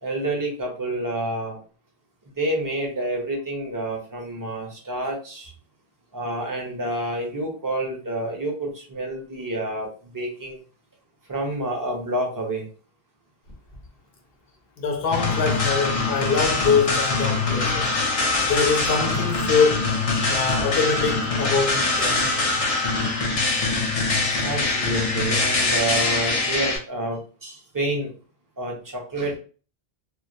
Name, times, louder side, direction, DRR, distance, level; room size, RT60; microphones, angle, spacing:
voice 1, 0.0-1.6 2.4-5.5 6.1-10.6 11.3-12.7 24.4-28.1 28.6-29.4, right 1 dB, 25° right, 0.5 m, -28 dB
voice 2, 14.8-17.9 18.4-19.9 20.3-22.2, left 5 dB, 70° left, 0.8 m, -23 dB
sound 1, 15.1-26.8, left 3 dB, 50° left, 0.5 m, -23 dB
2.2 x 2.1 x 2.6 m
omnidirectional pair, 1.0 m